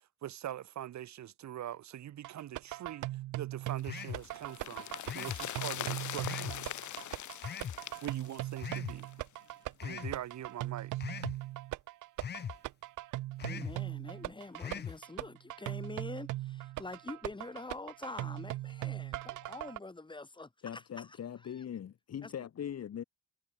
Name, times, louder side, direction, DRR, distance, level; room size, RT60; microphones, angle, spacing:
voice 1, 0.2-3.1 3.3-4.9 5.1-6.6 8.0-9.1 9.8-11.0, right 12 dB, 65° right, 1.7 m, -43 dB
sound 1, 2.2-19.8, right 16 dB, 85° right, 1.4 m, -40 dB
sound 2, 3.8-9.2 9.5-9.6, left 13 dB, 75° left, 1.9 m, -42 dB
sound 3, 3.8-4.3 5.0-5.4 6.2-6.6 7.4-7.8 8.6-9.0 9.8-10.2 11.0-11.4 12.2-12.6 13.4-13.8 14.6-15.0, left 8 dB, 35° left, 0.6 m, -40 dB
voice 2, 13.4-21.2 21.4-21.5 22.2-22.3, left 2 dB, 15° left, 2.6 m, -46 dB
voice 3, 20.6-23.0, left 9 dB, 55° left, 2.7 m, -41 dB
cardioid pair, 90°, 30 cm